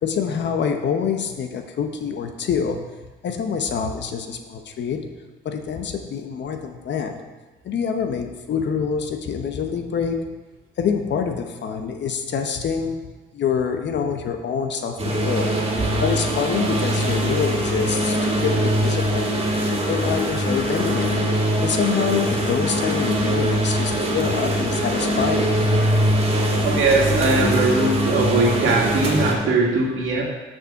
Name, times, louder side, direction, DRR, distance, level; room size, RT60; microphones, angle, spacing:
voice 1, 0.0-5.2 5.4-7.2 7.6-10.2 10.8-13.0 13.3-15.5 16.0-19.4 19.9-21.2 21.6-25.7, left 6 dB, 65° left, 5 dB, 1.0 m, -26 dB
sound 1, 15.0-29.3, equal, 30° right, 2.1 m, -22 dB
voice 2, 26.6-30.2, right 3 dB, 85° right, -3 dB, 2.3 m, -20 dB
6.7 x 6.4 x 5.8 m, 1.2 s
cardioid pair, 90°, 20 cm